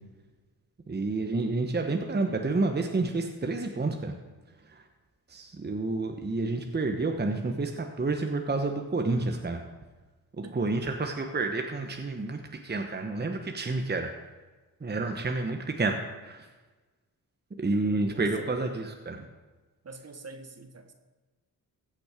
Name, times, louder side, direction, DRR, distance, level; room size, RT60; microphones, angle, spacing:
voice 1, 0.9-4.2 4.6-4.9 5.3-9.6 10.4-14.1 14.8-16.5 17.6-19.3, right 3 dB, 25° right, 4 dB, 1.1 m, -29 dB
voice 2, 17.9-18.8 19.8-20.9, right 3 dB, 45° right, 7 dB, 1.4 m, -45 dB
15.5 x 6.0 x 5.1 m, 1.3 s
cardioid pair, 60°, 37 cm